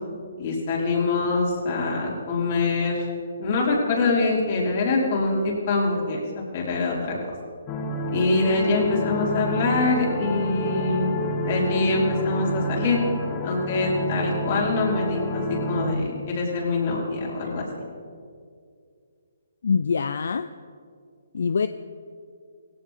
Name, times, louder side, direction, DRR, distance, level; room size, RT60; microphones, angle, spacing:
voice 1, 0.4-3.0 3.4-7.2 8.1-11.1 11.4-13.0 13.4-17.7, left 3 dB, 40° left, -3 dB, 4.5 m, -24 dB
sound 1, 7.7-15.9, equal, 20° left, 1.3 m, -29 dB
voice 2, 19.6-20.5 21.3-21.7, left 5 dB, 70° left, 12 dB, 0.5 m, -24 dB
18.0 x 17.0 x 3.7 m, 2.2 s
hypercardioid pair, 155°, 0 cm